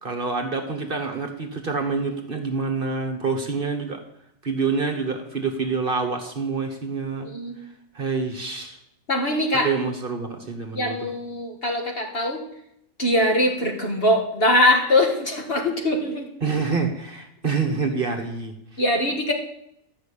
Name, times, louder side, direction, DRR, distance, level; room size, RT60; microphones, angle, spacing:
voice 1, 0.0-4.0 4.4-7.3 7.9-8.8 9.5-11.1 16.4-18.8, right 4 dB, 40° right, 5 dB, 1.5 m, -27 dB
voice 2, 7.2-7.6 9.1-9.7 10.7-12.4 13.0-16.3 18.8-19.3, left 1 dB, 45° left, 1 dB, 2.1 m, -22 dB
13.0 x 6.0 x 8.5 m, 0.76 s
omnidirectional pair, 1.4 m